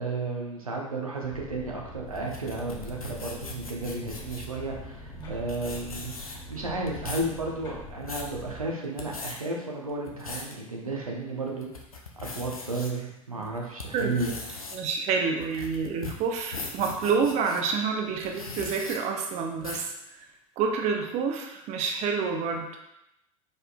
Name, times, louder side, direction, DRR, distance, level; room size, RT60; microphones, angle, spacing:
voice 1, 0.0-11.7 12.2-14.3, right 2 dB, 85° right, -1 dB, 0.8 m, -33 dB
sound 1, 1.2-8.7, equal, 25° left, 1.5 m, -43 dB
sound 2, 2.2-4.6 5.2-5.3 5.5-6.5 6.9-7.3 7.8-8.3 8.8-9.3 9.9-10.5 11.0-11.1 11.6-12.9 13.4-17.6 18.2-19.0 19.6-19.9, left 3 dB, 85° left, 0.7 m, -39 dB
voice 2, 14.7-19.9 20.6-22.7, right 5 dB, 40° right, 3 dB, 0.6 m, -28 dB
5.1 x 4.2 x 2.3 m, 0.85 s
figure-of-eight pair, 75°, 18 cm